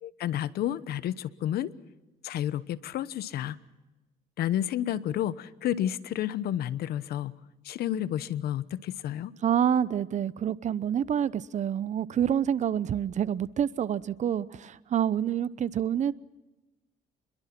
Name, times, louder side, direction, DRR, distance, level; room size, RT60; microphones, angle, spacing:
voice 1, 0.0-1.7 2.2-3.6 4.4-7.4 7.6-9.3, left 11 dB, 65° left, 1.1 m, -31 dB
voice 2, 9.4-16.1, right 9 dB, 45° right, 0.8 m, -27 dB
27.0 x 22.0 x 6.0 m
cardioid pair, 110°, 17 cm